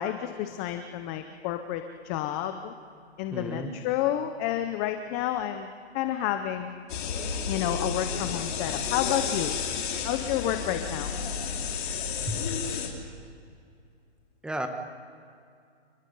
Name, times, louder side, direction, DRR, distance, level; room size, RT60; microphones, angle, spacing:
voice 1, 0.0-2.7 3.2-5.7 5.9-6.7 7.5-9.6 10.0-11.1, left 11 dB, 15° left, 8 dB, 0.5 m, -30 dB
voice 2, 3.3-3.7 12.3-12.4 14.4-14.7, right 1 dB, 5° right, 6 dB, 1.2 m, -32 dB
sound 1, 6.9-12.9, left 6 dB, 50° left, 3.8 m, -31 dB
29.0 x 20.0 x 5.4 m, 2.4 s
hypercardioid pair, 145°, 33 cm